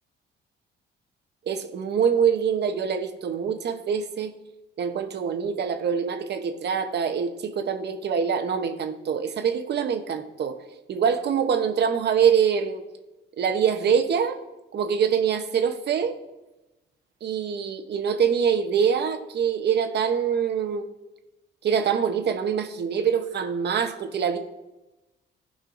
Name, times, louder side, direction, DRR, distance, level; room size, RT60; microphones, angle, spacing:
voice 1, 1.5-4.3 4.8-10.6 10.9-12.8 13.4-14.4 14.7-16.2 17.2-20.9 21.6-24.4, right 7 dB, 60° right, 7 dB, 0.9 m, -24 dB
16.0 x 5.4 x 2.6 m, 1.0 s
cardioid pair, 90°, 20 cm